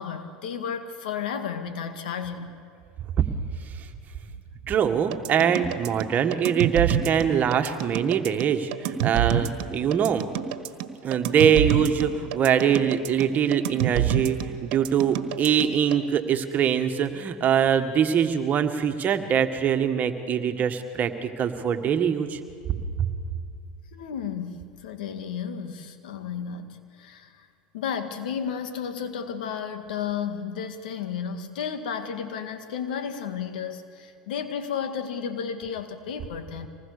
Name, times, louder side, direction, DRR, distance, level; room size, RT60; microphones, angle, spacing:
voice 1, 0.0-2.5 23.9-27.5 27.7-36.7, left 7 dB, 80° left, 8 dB, 2.0 m, -33 dB
voice 2, 4.7-10.3 11.0-22.4 23.0-23.1, right 8 dB, 40° right, 7 dB, 1.8 m, -23 dB
sound 1, 5.1-16.0, right 10 dB, 65° right, 1.5 m, -27 dB
25.0 x 19.5 x 6.8 m, 2.3 s
hypercardioid pair, 95°, 5 cm